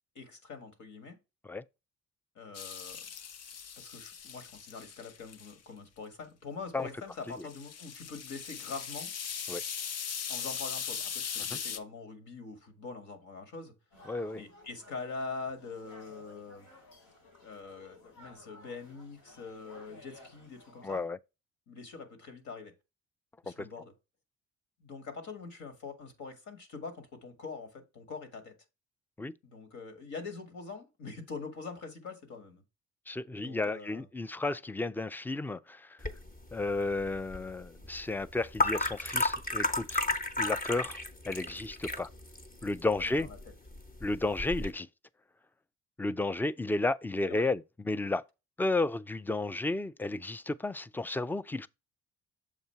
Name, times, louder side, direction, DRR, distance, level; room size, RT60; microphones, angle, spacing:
voice 1, 0.2-1.2 2.4-3.1 3.8-9.1 10.3-13.7 14.3-16.7 17.4-21.0 21.7-22.7 23.4-23.9 24.8-28.5 29.4-32.6 33.4-34.1 43.0-43.4 47.3-47.5, left 4 dB, 75° left, 1.9 m, -44 dB
sound 1, 2.5-5.5 7.3-11.8, left 7 dB, 55° left, 0.7 m, -39 dB
sound 2, 13.9-21.1, left 2 dB, 90° left, 3.3 m, -56 dB
voice 2, 14.1-14.4 20.8-21.2 23.5-23.6 29.2-29.3 33.1-36.0 36.5-40.0 40.4-41.0 41.3-42.1 42.6-43.3 44.0-44.9 46.0-48.2 48.6-51.7, left 2 dB, 5° left, 0.3 m, -32 dB
sound 3, 36.0-44.7, left 2 dB, 30° left, 1.1 m, -34 dB
7.3 x 2.7 x 5.6 m
cardioid pair, 90°, 30 cm